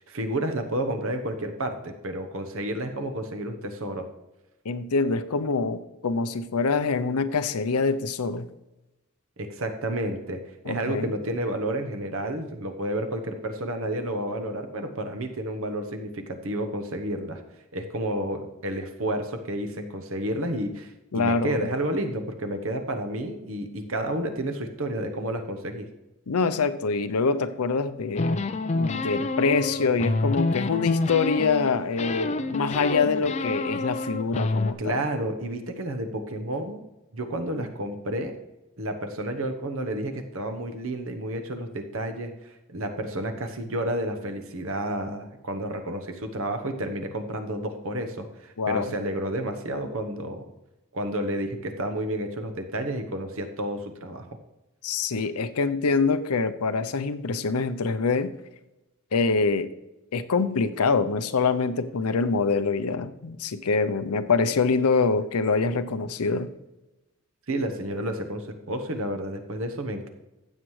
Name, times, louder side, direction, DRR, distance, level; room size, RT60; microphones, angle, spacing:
voice 1, 0.0-4.1 9.4-17.4 17.7-25.9 34.8-36.8 37.1-38.4 38.8-50.4 50.9-54.3 67.5-70.1, right 1 dB, 70° right, 7 dB, 1.0 m, -31 dB
voice 2, 4.6-8.5 10.7-11.1 21.1-21.7 26.3-28.4 28.7-35.0 48.6-48.9 54.8-58.3 59.1-59.7 60.1-66.5, left 4 dB, 90° left, 11 dB, 0.6 m, -25 dB
sound 1, 28.2-31.7 32.0-34.7, left 2 dB, 30° left, 0.4 m, -28 dB
15.0 x 7.4 x 3.2 m, 1.0 s
head